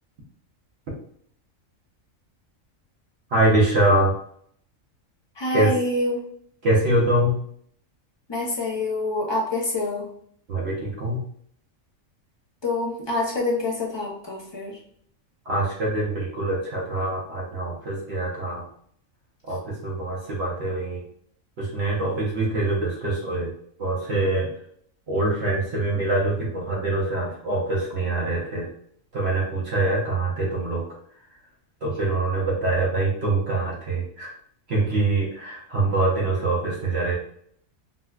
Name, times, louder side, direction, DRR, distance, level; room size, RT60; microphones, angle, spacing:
voice 1, 3.3-4.1 5.5-5.7 6.6-7.4 10.5-11.2 15.5-18.6 19.5-21.0 21.6-23.5 23.8-24.5 25.1-28.7 29.1-30.9 31.8-34.3 34.7-37.1, right 2 dB, 55° right, -4 dB, 1.0 m, -24 dB
voice 2, 5.4-6.2 8.3-10.1 12.6-14.7, left 2 dB, 35° left, -3 dB, 0.5 m, -26 dB
3.9 x 2.2 x 2.3 m, 0.64 s
omnidirectional pair, 1.4 m